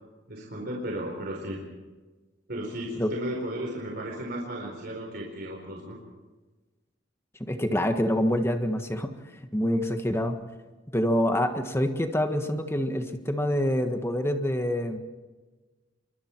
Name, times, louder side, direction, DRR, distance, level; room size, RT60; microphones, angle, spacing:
voice 1, 0.3-1.6 2.5-6.0, right 1 dB, 55° right, -1 dB, 4.3 m, -34 dB
voice 2, 7.4-9.1 9.5-10.3 10.9-15.0, equal, 15° left, 6 dB, 1.6 m, -26 dB
27.0 x 23.5 x 4.7 m, 1.2 s
head